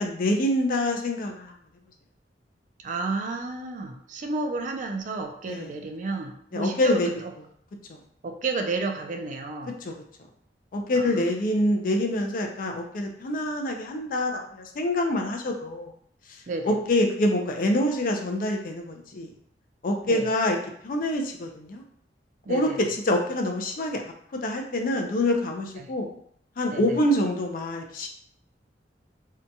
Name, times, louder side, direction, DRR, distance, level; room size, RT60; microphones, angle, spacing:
voice 1, 0.0-1.5 5.5-5.7 6.5-7.1 7.9-8.0 9.7-9.9 10.7-15.9 16.6-19.3 19.8-20.6 20.8-21.8 22.5-26.1 26.6-28.1, left 1 dB, 50° left, 3 dB, 0.4 m, -26 dB
voice 2, 2.8-7.3 8.2-9.7 11.0-11.3 16.5-16.8 20.0-20.2 22.5-22.8 25.8-25.9 26.7-27.0, right 3 dB, 45° right, 4 dB, 0.3 m, -31 dB
2.7 x 2.2 x 2.6 m, 0.63 s
head